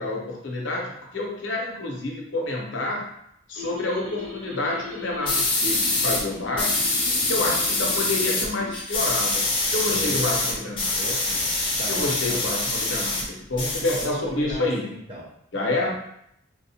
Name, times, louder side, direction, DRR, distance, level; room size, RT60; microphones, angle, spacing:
voice 1, 0.0-3.0 3.5-6.9 7.3-9.5 9.7-10.9 11.9-14.8 15.5-15.9, left 2 dB, 65° left, -1 dB, 0.7 m, -28 dB
sound 1, 3.6-8.8, left 3 dB, 60° right, 1.4 m, -39 dB
sound 2, 5.3-6.2 6.6-8.5 8.7-13.2 13.5-14.5, left 2 dB, 25° left, 0.7 m, -25 dB
voice 2, 7.0-7.9 9.8-10.5 10.9-12.6 13.9-15.3 15.8-15.9, equal, 30° right, -3 dB, 0.6 m, -38 dB
3.8 x 2.3 x 2.7 m, 0.75 s
head